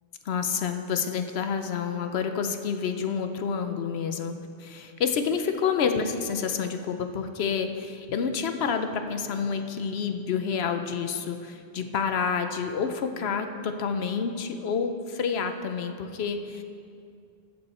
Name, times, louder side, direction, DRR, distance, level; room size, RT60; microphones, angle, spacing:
voice 1, 0.2-16.6, left 6 dB, 85° left, 7 dB, 0.9 m, -29 dB
14.5 x 7.8 x 4.2 m, 2.4 s
omnidirectional pair, 1.0 m